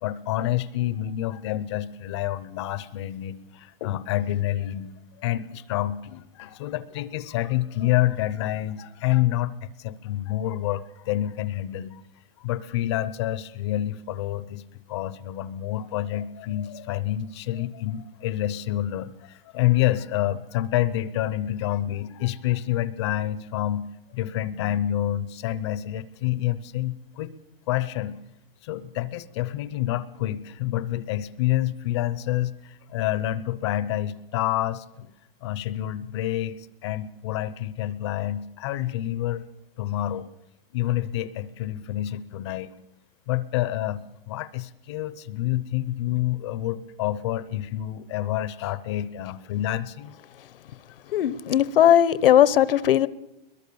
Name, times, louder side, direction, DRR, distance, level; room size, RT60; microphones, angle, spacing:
voice 1, 0.0-4.9 5.2-12.0 12.4-14.6 14.9-23.8 24.1-27.3 27.7-28.1 28.6-35.1 35.4-39.4 39.8-40.3 40.7-42.7 43.3-44.0 44.3-50.2, left 13 dB, 30° left, 17 dB, 0.7 m, -28 dB
voice 2, 51.1-53.1, left 11 dB, 65° left, 19 dB, 1.0 m, -18 dB
22.0 x 21.5 x 6.9 m, 0.90 s
hypercardioid pair, 175°, 30 cm